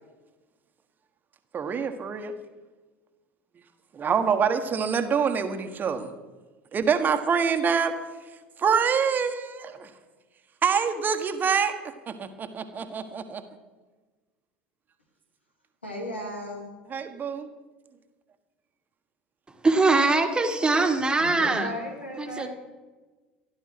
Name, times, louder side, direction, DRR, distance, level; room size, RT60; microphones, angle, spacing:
voice 1, 1.5-2.3 3.9-6.1 6.7-7.9 8.6-9.9 10.6-11.7 12.1-13.4 16.9-17.5, right 6 dB, 30° right, 7 dB, 1.4 m, -25 dB
voice 2, 15.8-16.7 21.2-22.5, left 1 dB, 85° left, 0 dB, 3.2 m, -35 dB
voice 3, 19.6-21.7 22.2-22.5, right 3 dB, 15° right, 5 dB, 1.9 m, -22 dB
15.0 x 12.0 x 6.1 m, 1.3 s
figure-of-eight pair, 70°, 6 cm